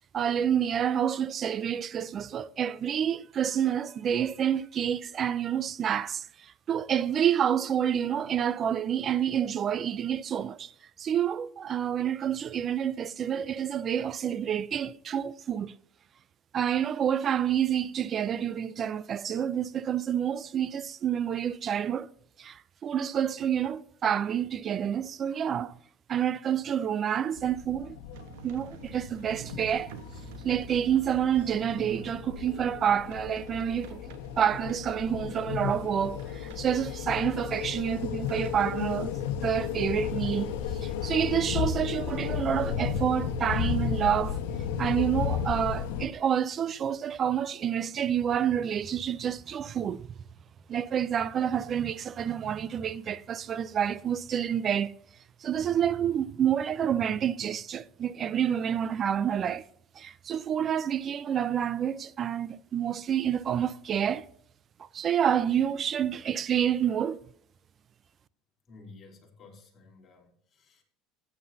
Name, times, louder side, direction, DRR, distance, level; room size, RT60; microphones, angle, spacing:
voice 1, 0.1-10.7 11.0-15.7 16.5-22.1 22.4-25.7 26.1-28.0 28.4-29.9 30.4-34.0 34.4-39.2 39.4-40.5 40.8-44.4 44.8-50.1 50.7-54.9 55.4-59.6 60.0-64.3 64.8-67.2, right 9 dB, 35° right, 0.5 m, -28 dB
sound 1, 27.4-46.1, left 8 dB, 85° left, 1.2 m, -34 dB
sound 2, 28.1-39.9, right 8 dB, 80° right, 1.1 m, -50 dB
voice 2, 68.7-70.8, left 3 dB, 35° left, 3.2 m, -53 dB
14.5 x 9.6 x 2.7 m
supercardioid pair, 125°, 0 cm